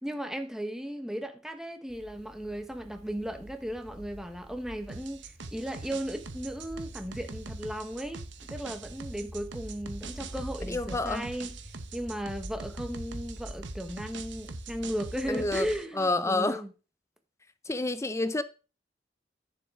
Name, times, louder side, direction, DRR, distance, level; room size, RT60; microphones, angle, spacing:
voice 1, 0.0-8.2 8.5-11.6 11.9-16.7, equal, 5° right, 1.1 m, -36 dB
sound 1, 1.9-15.8, right 1 dB, 40° right, 1.4 m, -46 dB
sound 2, 4.9-15.8, right 4 dB, 90° right, 1.0 m, -43 dB
voice 2, 10.7-11.3 15.3-15.7 16.0-16.6 17.7-18.4, left 2 dB, 15° left, 0.6 m, -28 dB
12.5 x 6.8 x 3.7 m
head